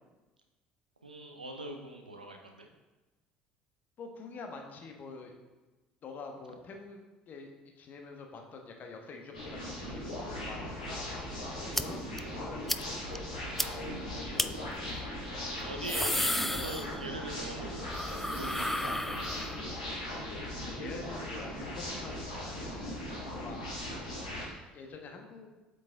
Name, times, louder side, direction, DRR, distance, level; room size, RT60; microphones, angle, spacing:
voice 1, 1.0-2.7 11.8-12.1 15.4-17.9 18.4-19.3, right 1 dB, 85° right, 3 dB, 0.8 m, -42 dB
voice 2, 4.0-5.3 6.0-11.1 11.6-14.2 20.6-23.8 24.2-25.5, left 4 dB, 40° left, 3 dB, 1.2 m, -47 dB
sound 1, 9.3-24.4, left 1 dB, 80° left, 2.4 m, -39 dB
sound 2, 11.7-11.8 12.2-12.3 12.7-12.8 13.2-13.3 13.6-13.7 14.4-14.5 15.6-17.3 17.6-19.7, left 1 dB, 5° left, 0.4 m, -33 dB
7.9 x 6.8 x 3.6 m, 1.2 s
figure-of-eight pair, 60°, 4 cm